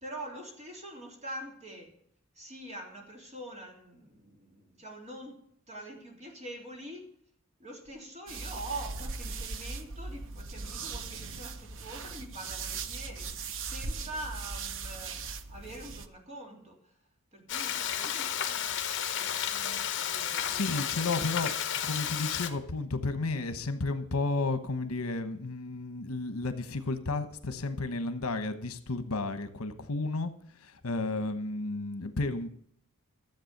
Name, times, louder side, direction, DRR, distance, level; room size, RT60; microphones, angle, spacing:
voice 1, 0.0-1.9 2.3-7.1 7.6-17.0 17.3-18.7 19.1-21.5, right 1 dB, 30° right, 1 dB, 3.1 m, -45 dB
sound 1, 8.3-16.1, right 4 dB, 60° right, 0.9 m, -39 dB
Frying (food), 17.5-22.5, left 9 dB, 55° left, 1.1 m, -32 dB
voice 2, 20.4-21.5 21.8-32.5, left 3 dB, 80° left, 10 dB, 1.1 m, -32 dB
13.5 x 7.8 x 6.6 m, 0.64 s
head